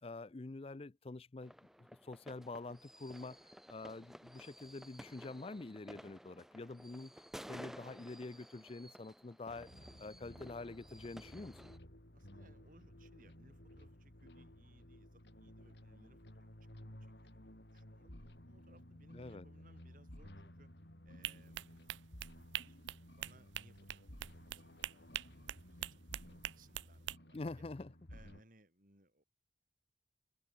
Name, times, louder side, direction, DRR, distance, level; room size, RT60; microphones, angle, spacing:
voice 1, 0.0-1.5 1.8-3.4 3.7-7.1 7.5-9.7 10.0-11.7 19.1-19.4 27.3-27.9, left 3 dB, 30° left, 0.5 m, -46 dB
sound 1, 1.4-11.8, equal, ahead, 1.7 m, -54 dB
sound 2, 9.5-28.4, left 1 dB, 65° left, 4.2 m, -56 dB
voice 2, 12.1-16.5 17.0-20.7 21.0-22.0 22.5-25.2 25.7-27.6 28.1-29.2, right 1 dB, 45° right, 5.3 m, -67 dB
sound 3, 21.2-27.2, right 13 dB, 80° right, 0.4 m, -44 dB
head